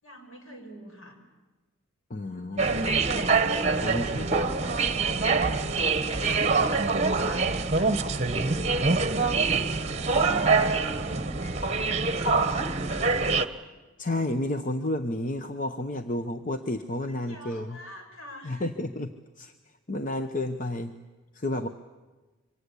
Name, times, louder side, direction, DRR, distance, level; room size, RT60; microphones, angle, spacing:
voice 1, 0.0-1.2 2.3-3.2 3.7-4.6 4.8-5.3 6.0-8.0 10.6-13.4 17.1-18.7, equal, 65° left, 3 dB, 6.1 m, -47 dB
voice 2, 2.1-2.6 2.9-3.0 3.8-4.4 5.6-5.8 14.0-17.8 18.4-19.5 19.9-20.9 21.3-21.7, left 1 dB, 35° left, 7 dB, 0.8 m, -31 dB
sound 1, 2.6-13.5, right 4 dB, 30° right, 1.1 m, -25 dB
26.0 x 24.5 x 8.4 m, 1.2 s
head